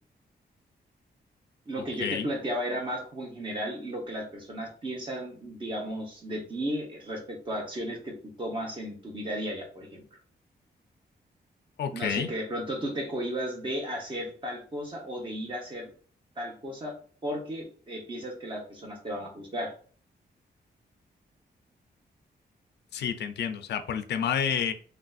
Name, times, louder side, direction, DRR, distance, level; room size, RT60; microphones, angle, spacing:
voice 1, 1.7-10.0 11.9-15.9 16.4-16.9 17.2-19.7, equal, 30° right, -1 dB, 0.8 m, -34 dB
voice 2, 11.8-12.3 22.9-24.7, left 8 dB, 90° left, 9 dB, 0.4 m, -29 dB
3.3 x 2.5 x 2.3 m, 0.43 s
wide cardioid pair, 175°, 17 cm